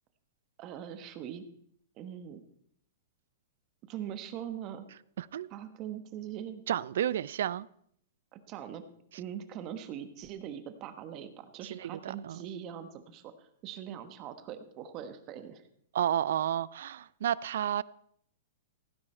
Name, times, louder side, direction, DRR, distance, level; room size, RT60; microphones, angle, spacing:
voice 1, 0.6-1.4 2.0-2.4 3.8-4.9 5.5-6.6 8.3-8.8 9.2-15.6, right 9 dB, 30° right, 9 dB, 1.2 m, -42 dB
voice 2, 5.2-5.5 6.7-7.7 11.7-12.4 15.9-17.8, right 10 dB, 65° right, 21 dB, 0.4 m, -31 dB
16.0 x 9.7 x 4.4 m, 0.67 s
supercardioid pair, 165°, 0 cm